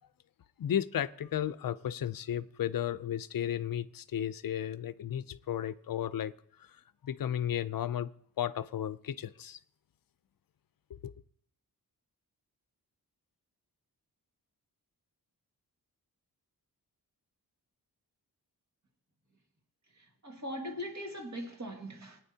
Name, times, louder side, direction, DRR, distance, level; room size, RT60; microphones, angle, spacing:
voice 1, 0.6-6.3 7.0-8.1 8.4-9.6 10.9-11.1, left 10 dB, 60° left, 0.5 m, -34 dB
voice 2, 19.9-22.2, equal, 45° right, 2.0 m, -40 dB
21.0 x 9.5 x 2.8 m
wide cardioid pair, 155°, 39 cm